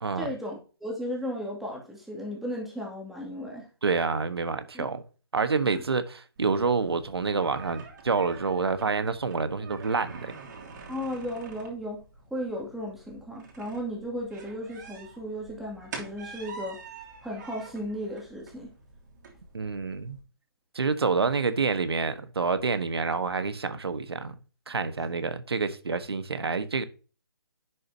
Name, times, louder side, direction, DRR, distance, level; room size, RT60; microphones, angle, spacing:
voice 1, 0.2-3.7 4.7-4.9 5.6-5.8 10.9-12.0 12.3-16.8 17.2-18.7, equal, ahead, 2.3 m, -35 dB
voice 2, 3.8-5.0 5.3-10.3 19.5-20.2 20.7-24.4 24.7-26.8, right 4 dB, 80° right, 1.2 m, -28 dB
sound 1, 6.4-20.2, right 4 dB, 50° right, 2.8 m, -47 dB
10.5 x 6.6 x 2.8 m
hypercardioid pair, 150°, 13 cm